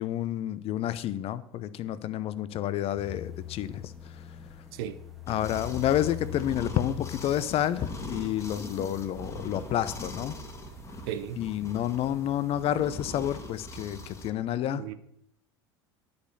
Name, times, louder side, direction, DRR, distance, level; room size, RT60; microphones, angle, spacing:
voice 1, 0.0-4.4 5.3-10.4 11.4-14.8, left 11 dB, 45° left, 0.6 m, -30 dB
sound 1, 2.9-11.4, left 10 dB, ahead, 1.6 m, -44 dB
sound 2, 5.3-14.3, left 1 dB, 20° left, 1.8 m, -42 dB
voice 2, 11.1-11.4 14.7-14.9, right 10 dB, 65° right, 0.8 m, -35 dB
10.0 x 5.3 x 6.6 m
hypercardioid pair, 80°, 14 cm